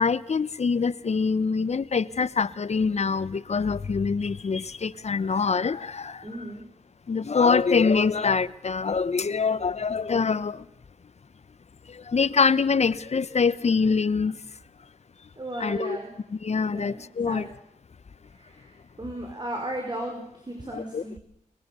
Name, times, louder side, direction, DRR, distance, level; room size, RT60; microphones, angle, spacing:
voice 1, 0.0-6.2 7.1-10.6 11.9-14.4 15.6-16.0 16.4-17.5 20.7-21.2, left 5 dB, 50° left, 0.9 m, -24 dB
voice 2, 6.2-6.6 15.4-16.2 16.7-17.5 18.3-21.2, right 1 dB, 30° right, 5.4 m, -36 dB
23.0 x 21.5 x 6.9 m
cardioid pair, 60°, 14 cm